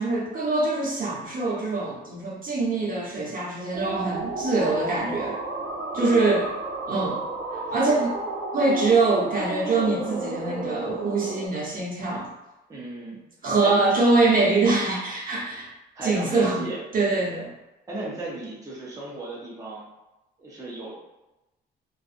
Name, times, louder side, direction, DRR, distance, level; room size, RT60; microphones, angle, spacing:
voice 1, 0.0-5.4 5.9-6.4 6.9-7.2 7.7-8.1 8.5-12.3 13.4-15.7 16.0-16.6 16.9-17.5, right 3 dB, 45° right, -5 dB, 0.9 m, -23 dB
sound 1, 3.7-11.5, right 3 dB, 65° right, 0.6 m, -32 dB
voice 2, 5.9-6.3 12.7-13.2 13.6-13.9 15.9-17.1 17.9-19.8 20.4-20.9, right 2 dB, 15° right, -6 dB, 0.8 m, -35 dB
2.5 x 2.5 x 2.5 m, 0.98 s
cardioid pair, 90°, 20 cm